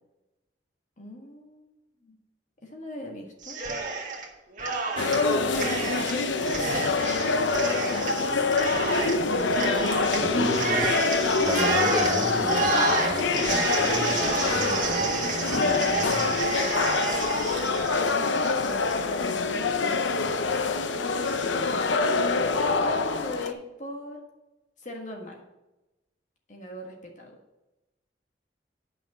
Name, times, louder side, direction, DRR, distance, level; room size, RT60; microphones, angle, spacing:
voice 1, 1.0-1.7 2.0-2.2 2.6-3.6 5.7-7.4 7.8-9.8 18.6-20.3 21.5-24.2 24.8-25.4 26.5-27.3, left 1 dB, 40° left, 1 dB, 1.6 m, -40 dB
Cheering, 3.4-4.3 4.6-18.9, right 4 dB, 45° right, 1.7 m, -30 dB
sound 1, 5.0-23.5, left 4 dB, 80° left, 0.7 m, -25 dB
voice 2, 10.1-10.9 11.4-16.9, right 1 dB, 15° right, -2 dB, 2.0 m, -33 dB
10.0 x 5.7 x 6.1 m, 0.99 s
head